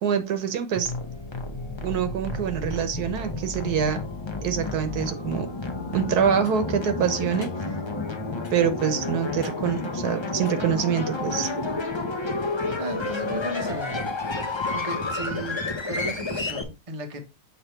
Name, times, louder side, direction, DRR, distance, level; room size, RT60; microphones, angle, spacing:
voice 1, 0.0-0.9 1.8-4.0 4.4-5.5 5.9-7.5 8.5-11.5, right 8 dB, 80° right, 1.4 m, -25 dB
sound 1, 0.8-16.6, left 3 dB, 25° left, 0.6 m, -31 dB
sound 2, 5.7-11.8, left 6 dB, 65° left, 1.3 m, -42 dB
voice 2, 12.8-14.0 14.4-17.2, right 1 dB, 25° right, 1.0 m, -35 dB
6.9 x 3.3 x 4.4 m
omnidirectional pair, 1.6 m